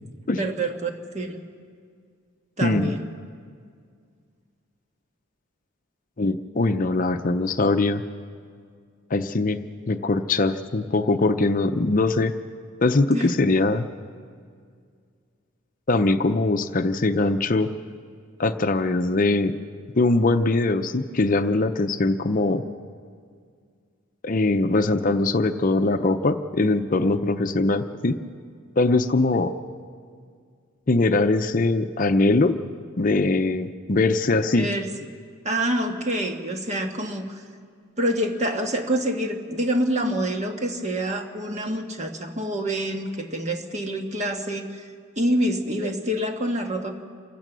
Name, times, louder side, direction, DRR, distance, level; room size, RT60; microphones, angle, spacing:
voice 1, 0.4-1.4 2.6-3.1 13.1-13.3 34.6-34.9 35.4-37.4 38.0-44.8 45.2-46.9, right 1 dB, 35° right, 4 dB, 1.5 m, -26 dB
voice 2, 2.6-2.9 6.2-8.0 9.1-12.3 12.8-13.9 15.9-17.7 18.4-19.5 19.9-22.6 24.2-28.2 28.8-29.5 30.9-32.6 33.0-34.7, left 2 dB, 40° left, 8 dB, 0.6 m, -22 dB
27.5 x 16.0 x 6.2 m, 2.1 s
head